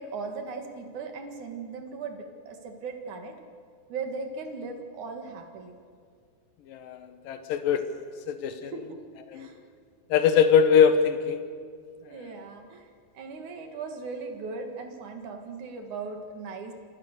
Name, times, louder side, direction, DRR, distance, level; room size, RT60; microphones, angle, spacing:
voice 1, 0.0-3.4 3.9-5.8 8.6-9.0 9.3-9.6 12.1-12.9 13.1-16.7, right 4 dB, 50° right, 4 dB, 2.7 m, -38 dB
voice 2, 6.7-7.9 8.3-8.7 9.3-9.5 10.1-11.4 12.1-12.2, left 7 dB, 75° left, 9 dB, 2.0 m, -22 dB
28.5 x 27.0 x 6.7 m, 2.2 s
omnidirectional pair, 5.6 m